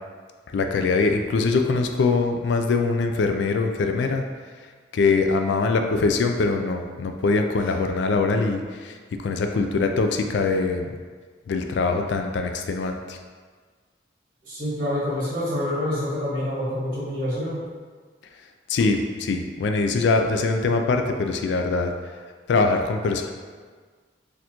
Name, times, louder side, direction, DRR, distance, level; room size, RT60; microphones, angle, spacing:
voice 1, 0.5-4.2 4.9-10.9 11.5-13.2 18.7-21.9 22.5-23.3, left 3 dB, 70° left, 5 dB, 0.3 m, -23 dB
voice 2, 14.4-17.6, left 1 dB, 45° right, -8 dB, 1.4 m, -27 dB
4.1 x 2.6 x 2.9 m, 1.5 s
head